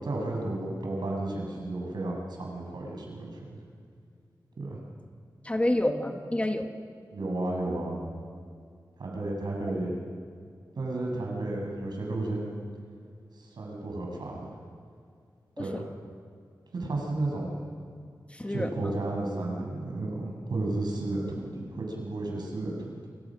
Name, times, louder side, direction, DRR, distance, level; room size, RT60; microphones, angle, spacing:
voice 1, 0.0-3.4 4.6-4.8 7.1-8.0 9.0-9.9 10.7-12.5 13.3-14.5 15.6-15.9 16.7-17.5 18.5-23.1, right 2 dB, 80° right, -1 dB, 7.4 m, -33 dB
voice 2, 5.4-6.7 15.6-15.8 18.3-19.0, left 1 dB, 15° left, 5 dB, 1.8 m, -29 dB
28.0 x 25.0 x 6.5 m, 2.3 s
wide cardioid pair, 80°, 7 cm